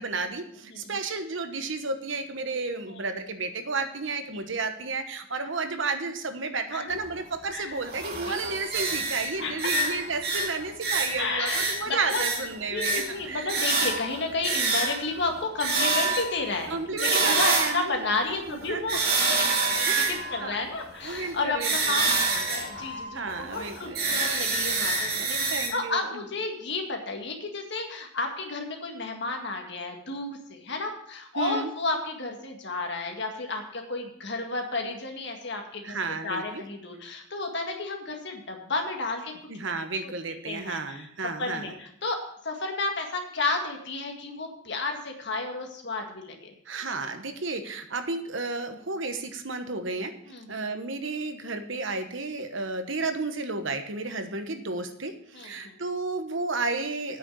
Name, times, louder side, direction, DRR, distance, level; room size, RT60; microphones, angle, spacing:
voice 1, 0.0-13.5 16.7-18.1 18.5-18.8 19.9-20.6 21.0-22.0 23.1-24.2 24.4-26.2 31.3-31.7 35.8-36.6 39.5-41.7 46.7-50.1 50.5-57.2, right 3 dB, 65° right, 8 dB, 1.2 m, -32 dB
sound 1, 6.9-7.0 7.8-18.1 18.6-25.7, right 3 dB, 50° right, 2.4 m, -27 dB
voice 2, 7.5-7.8 8.3-8.4 9.4-10.0 11.2-12.3 12.7-20.0 20.3-36.0 36.2-39.3 40.0-40.1 40.5-41.1 41.4-46.5 50.3-50.6 55.3-55.7, left 3 dB, 55° left, 3 dB, 1.9 m, -32 dB
8.7 x 6.6 x 8.4 m, 0.69 s
head